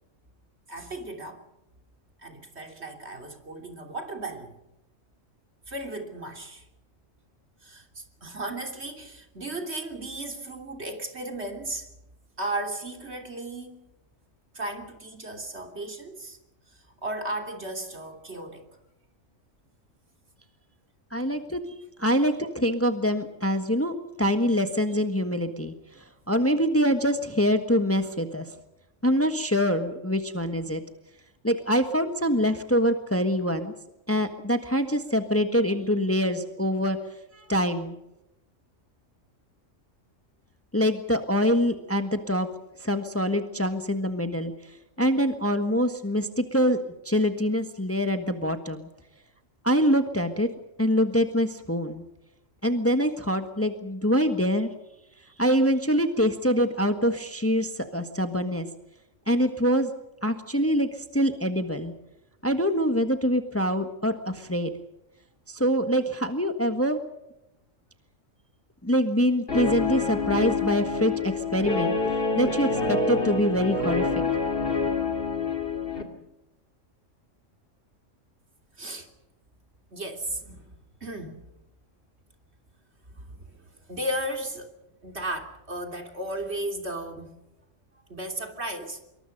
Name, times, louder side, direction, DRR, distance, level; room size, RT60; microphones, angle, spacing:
voice 1, 0.7-1.4 2.2-4.6 5.7-6.7 7.6-11.9 12.4-13.8 14.5-16.4 16.7-18.7 78.8-79.1 79.9-81.4 83.1-84.8 85.0-87.3 88.1-89.0, right 1 dB, 55° right, 3.4 m, -35 dB
voice 2, 21.1-21.6 22.0-28.6 29.0-30.8 31.4-33.7 34.1-37.0 37.3-38.0 40.7-42.5 42.8-44.5 45.0-48.9 49.6-50.5 50.8-52.0 52.6-54.7 55.4-58.7 59.3-59.9 60.2-61.9 62.4-64.7 65.5-67.0 68.8-72.0 72.3-74.2, equal, 10° left, 1.5 m, -25 dB
Guitar, 69.5-76.0, left 4 dB, 45° left, 3.1 m, -27 dB
26.0 x 23.0 x 5.4 m
omnidirectional pair, 1.3 m